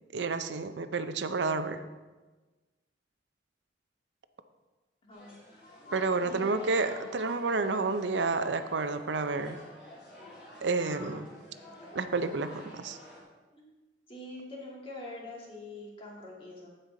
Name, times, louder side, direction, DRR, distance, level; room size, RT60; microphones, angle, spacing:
voice 1, 0.1-1.8 5.9-9.6 10.6-11.3 11.9-13.0, right 3 dB, 85° right, 10 dB, 0.6 m, -30 dB
voice 2, 5.0-5.4 6.2-6.7 13.5-13.7 14.1-16.7, left 1 dB, 30° left, -4 dB, 2.3 m, -44 dB
sound 1, 5.1-13.2, left 1 dB, 55° left, 3.4 m, -48 dB
15.5 x 5.5 x 3.9 m, 1.2 s
head